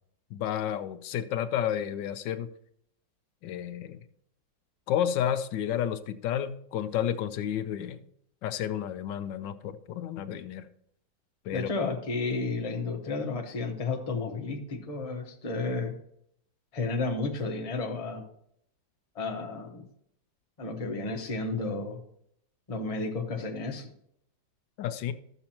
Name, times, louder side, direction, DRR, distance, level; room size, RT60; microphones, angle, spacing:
voice 1, 0.3-2.5 3.4-4.0 4.9-8.0 8.4-10.6 11.5-11.7 24.8-25.1, left 10 dB, 80° left, 11 dB, 1.3 m, -31 dB
voice 2, 11.5-15.9 16.7-18.2 19.1-19.8 20.6-22.0 22.7-23.9, left 3 dB, 25° left, 3 dB, 0.9 m, -32 dB
13.0 x 6.9 x 2.9 m, 0.70 s
omnidirectional pair, 2.0 m